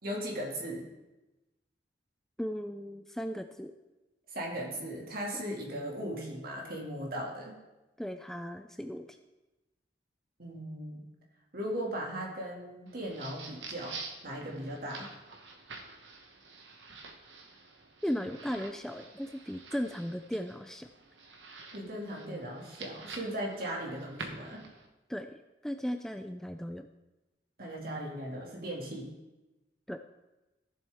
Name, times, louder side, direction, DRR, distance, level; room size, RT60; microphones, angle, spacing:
voice 1, 0.0-0.9 4.3-7.6 10.4-11.1 11.5-14.0 14.2-15.1 21.7-24.6 27.6-29.1, equal, 55° right, -1 dB, 2.2 m, -38 dB
voice 2, 2.4-3.7 5.3-5.4 8.0-9.1 18.0-20.9 25.1-25.4 25.6-26.9 29.9-30.0, equal, 5° left, 7 dB, 0.3 m, -36 dB
sound 1, 12.9-24.9, right 4 dB, 85° right, 1.2 m, -48 dB
14.5 x 7.3 x 3.5 m, 1.1 s
head